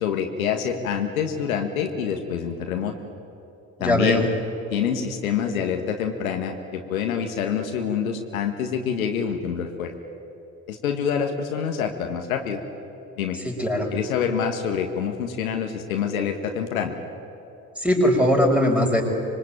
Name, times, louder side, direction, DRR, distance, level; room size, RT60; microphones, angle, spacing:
voice 1, 0.0-3.1 3.8-4.3 4.7-9.9 10.7-12.6 13.2-13.4 13.9-16.9, left 7 dB, 80° left, 4 dB, 1.8 m, -26 dB
voice 2, 3.8-4.2 13.4-13.9 17.8-19.0, equal, 5° right, 0 dB, 6.2 m, -20 dB
25.5 x 22.5 x 9.0 m, 2.8 s
figure-of-eight pair, 50°, 42 cm